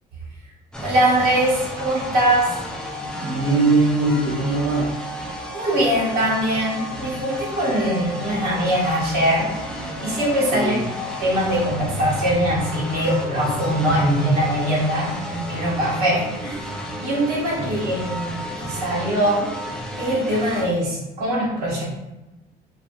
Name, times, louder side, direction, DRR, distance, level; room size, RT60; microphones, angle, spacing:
sound 1, 0.7-20.7, left 1 dB, 5° left, 0.4 m, -32 dB
voice 1, 0.8-2.5 5.5-9.5 10.0-10.9 11.2-16.7 17.0-19.5 20.0-21.8, right 1 dB, 65° right, -6 dB, 1.4 m, -22 dB
voice 2, 3.2-5.0 10.5-10.8 17.6-17.7, right 3 dB, 25° right, -7 dB, 0.9 m, -21 dB
2.6 x 2.4 x 2.6 m, 1.0 s
cardioid pair, 110°, 17 cm